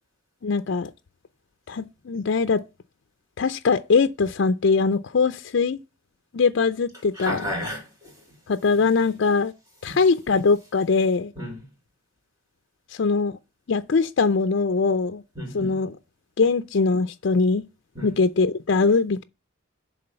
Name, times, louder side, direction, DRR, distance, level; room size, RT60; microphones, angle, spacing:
voice 1, 0.4-0.9 1.7-2.6 3.4-5.8 6.3-7.5 8.5-9.5 9.8-11.3 12.9-13.4 13.7-15.2 15.5-16.0 16.4-17.6 18.0-19.2, left 4 dB, 60° left, 0.5 m, -22 dB
voice 2, 7.1-8.1 9.9-10.0 11.3-11.6 15.3-15.8 17.9-18.1, equal, 15° right, 3.5 m, -32 dB
11.0 x 3.8 x 6.6 m
head